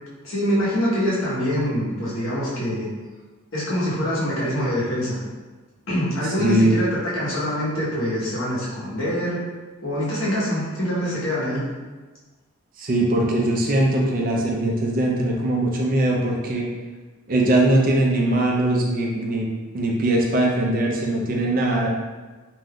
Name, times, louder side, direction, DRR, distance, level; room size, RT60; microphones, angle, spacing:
voice 1, 0.2-2.9 3.5-5.2 5.9-9.4 9.8-11.6, equal, 75° left, -7 dB, 1.0 m, -24 dB
voice 2, 6.4-6.8 12.8-16.7 17.3-19.5 19.7-21.9, right 1 dB, 40° right, -1 dB, 0.4 m, -21 dB
2.6 x 2.3 x 3.5 m, 1.3 s
head